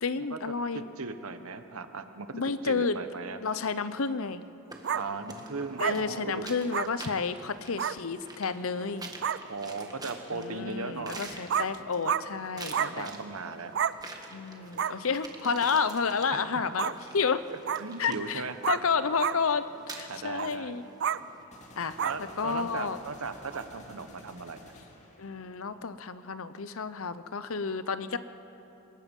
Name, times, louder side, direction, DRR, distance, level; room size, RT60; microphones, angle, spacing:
voice 1, 0.0-0.9 2.3-3.0 3.4-4.4 5.8-9.1 10.3-13.1 14.3-17.4 18.0-19.7 19.9-20.8 21.8-22.0 22.4-23.0 25.2-28.2, left 5 dB, 70° left, 13 dB, 0.8 m, -30 dB
voice 2, 1.0-2.3 2.6-3.4 4.9-6.5 9.5-11.3 12.7-13.7 16.3-16.6 17.5-18.5 20.1-20.7 22.0-24.7, right 4 dB, 75° right, 9 dB, 1.2 m, -37 dB
sound 1, 4.7-21.4, right 3 dB, 20° right, 1.6 m, -47 dB
sound 2, 4.8-5.0 5.8-6.0 6.7-6.9 7.8-8.0 8.8-8.9 9.2-9.4 11.1-11.2 11.5-11.7 12.1-12.2 12.7-12.9 13.7-14.0 14.8-14.9 16.8-17.0 17.7-17.8 18.6-18.9 19.2-19.4 20.4-20.5 21.0-21.2 22.0-22.2 23.5-23.6, right 8 dB, 55° right, 0.4 m, -29 dB
sound 3, 21.5-25.7, left 1 dB, 30° left, 2.4 m, -52 dB
25.5 x 21.5 x 5.4 m, 3.0 s
head